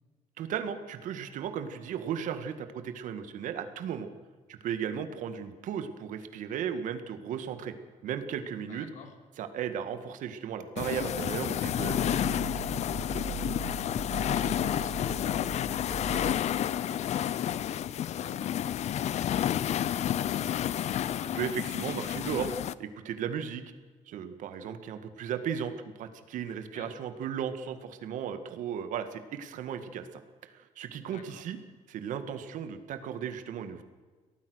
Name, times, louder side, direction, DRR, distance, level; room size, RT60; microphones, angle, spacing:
voice 1, 0.4-4.1 4.5-7.7 8.0-8.9 9.4-12.2 21.2-22.5 22.8-23.6 24.1-30.1 30.4-31.6 31.9-33.8, right 8 dB, 80° right, 9 dB, 1.9 m, -35 dB
voice 2, 8.7-9.1 12.1-12.6 13.2-20.7 26.7-26.9 31.0-31.5, left 5 dB, 75° left, 5 dB, 3.6 m, -48 dB
sound 1, 10.8-22.7, left 10 dB, 60° left, 0.7 m, -30 dB
sound 2, 11.0-16.3, right 5 dB, ahead, 5.0 m, -40 dB
23.5 x 18.0 x 6.4 m, 1.4 s
cardioid pair, 130°, 13 cm